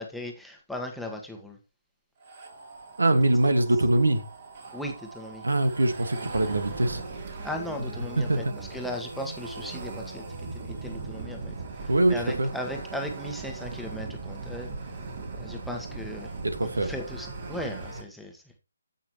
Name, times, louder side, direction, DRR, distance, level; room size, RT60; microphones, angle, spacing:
voice 1, 0.0-1.6 4.7-5.4 7.4-11.6 11.8-14.7 15.4-16.3 16.6-18.6, left 1 dB, ahead, 1.4 m, -37 dB
sound 1, 2.2-18.0, right 3 dB, 50° right, 3.3 m, -39 dB
voice 2, 3.0-4.2 5.4-7.0 8.2-8.5 11.9-12.5 16.4-16.9, right 1 dB, 80° right, 1.7 m, -23 dB
15.0 x 6.0 x 3.1 m
figure-of-eight pair, 145°, 0 cm